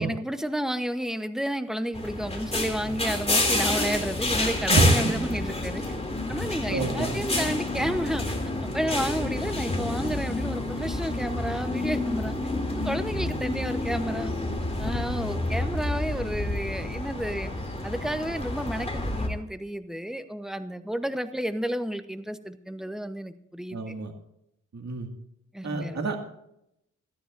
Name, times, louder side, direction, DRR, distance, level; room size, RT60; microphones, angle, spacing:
voice 1, 0.0-5.8 6.3-8.4 8.7-12.4 12.7-14.3 14.8-17.5 17.8-24.0 25.5-26.0, equal, ahead, 9 dB, 0.9 m, -31 dB
sound 1, 1.9-19.3, left 2 dB, 20° left, 2.8 m, -29 dB
voice 2, 4.7-5.1 6.7-7.1 23.7-24.1 24.7-25.1 25.6-26.2, right 3 dB, 60° right, 3 dB, 2.1 m, -26 dB
28.0 x 9.9 x 2.6 m, 0.79 s
wide cardioid pair, 105°, 32 cm